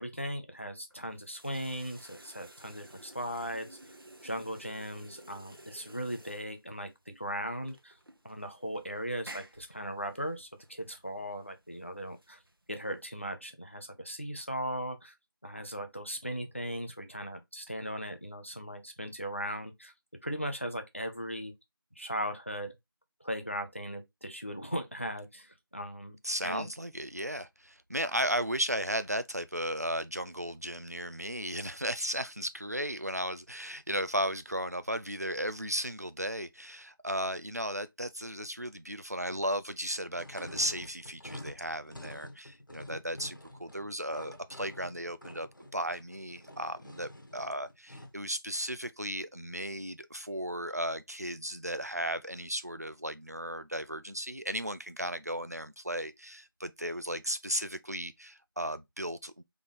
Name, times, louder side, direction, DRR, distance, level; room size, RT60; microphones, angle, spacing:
voice 1, 0.0-3.8 4.2-7.9 8.2-12.4 12.7-15.1 15.4-19.9 20.2-21.5 22.0-22.7 23.2-26.2 26.4-26.7, equal, 35° left, 0.6 m, -38 dB
sound 1, 0.9-13.3, right 1 dB, 70° right, 1.0 m, -54 dB
voice 2, 26.2-45.5 45.7-59.4, equal, 45° right, 0.5 m, -35 dB
sound 2, 40.1-48.2, left 1 dB, 60° left, 1.3 m, -48 dB
3.9 x 3.4 x 3.8 m
figure-of-eight pair, 180°, 12 cm